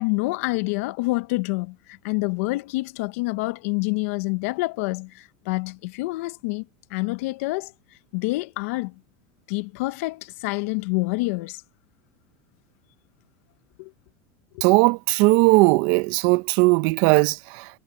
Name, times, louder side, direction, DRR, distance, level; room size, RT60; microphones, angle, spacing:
voice 1, 0.0-6.6 6.9-7.7 8.1-8.9 9.5-11.6 13.8-13.9 14.5-14.6, left 24 dB, 70° left, 1.1 m, -27 dB
voice 2, 14.6-17.7, right 24 dB, 60° right, 0.7 m, -18 dB
supercardioid pair, 130°, 8 cm